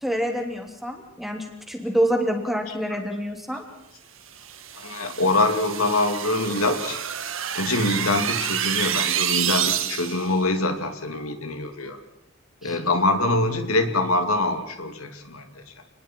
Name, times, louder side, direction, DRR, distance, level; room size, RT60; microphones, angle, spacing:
voice 1, 0.0-3.6 12.6-12.8, equal, ahead, 2 dB, 3.1 m, -27 dB
sound 1, 4.4-10.3, right 10 dB, 65° right, 1.6 m, -28 dB
voice 2, 4.7-7.0 7.5-12.0 12.6-15.7, left 2 dB, 85° left, 6 dB, 2.7 m, -24 dB
29.5 x 20.5 x 4.7 m, 0.86 s
head